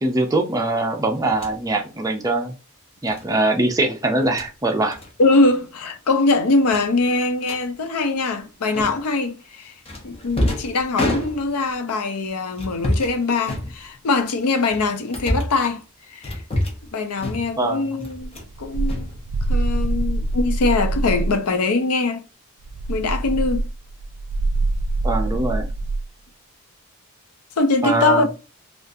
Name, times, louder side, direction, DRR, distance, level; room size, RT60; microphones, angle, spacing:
voice 1, 0.0-2.5 3.0-5.0 17.6-18.1 25.0-25.7 27.8-28.3, right 2 dB, 15° right, 0.5 m, -22 dB
sound 1, 1.3-1.6 3.1-3.3 4.1-4.5 4.9-5.1 5.4-5.6 5.9-6.0 6.7-7.6 8.7-9.2 9.9-11.7 12.5-13.2 13.4-14.2 14.7-15.6 16.2-16.9 17.2-17.7 18.0-18.5 18.8-19.7, left 1 dB, 25° left, 0.7 m, -28 dB
voice 2, 5.2-9.7 10.0-15.8 16.1-16.4 16.9-18.3 18.6-19.1 19.5-22.2 22.9-23.7 27.6-28.3, left 3 dB, 80° left, 0.5 m, -22 dB
sound 2, 18.2-21.4 22.6-26.1, right 2 dB, 75° right, 0.3 m, -24 dB
3.6 x 2.4 x 2.6 m
head